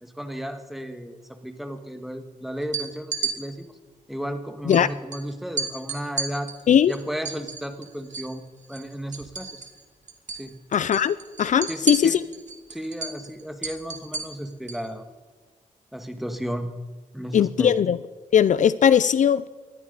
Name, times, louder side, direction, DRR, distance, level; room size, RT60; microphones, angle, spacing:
voice 1, 0.0-3.7 4.1-6.5 6.9-8.4 8.7-9.7 10.3-10.6 11.7-12.2 12.7-15.1 15.9-16.7 17.1-17.8, equal, ahead, 7 dB, 1.7 m, -34 dB
sound 1, 2.6-3.3 4.7-4.8 5.1-5.2 5.6-8.3 8.6-9.8 10.1-10.4 10.7-14.9, right 4 dB, 60° right, 2.1 m, -32 dB
voice 2, 10.7-12.2 17.3-18.0 18.3-19.5, left 8 dB, 60° left, 16 dB, 0.5 m, -19 dB
20.0 x 13.5 x 4.0 m, 1.3 s
cardioid pair, 75°, 14 cm